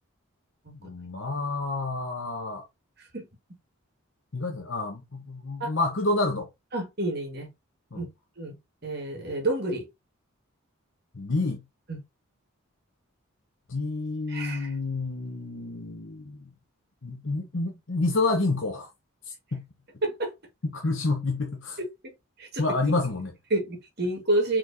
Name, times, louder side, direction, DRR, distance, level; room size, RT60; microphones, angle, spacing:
voice 1, 0.8-2.7 4.3-6.5 7.9-8.1 11.1-11.6 13.7-16.5 17.0-18.9 19.2-19.6 20.7-21.8 22.6-23.3, left 3 dB, 60° left, 0.9 m, -29 dB
voice 2, 6.7-7.5 7.9-8.0 8.4-8.5 8.8-9.8 11.9-12.0 14.3-14.7 20.0-20.3 22.4-22.6 23.5-24.6, right 1 dB, 50° right, 1.6 m, -28 dB
4.5 x 4.4 x 2.6 m
head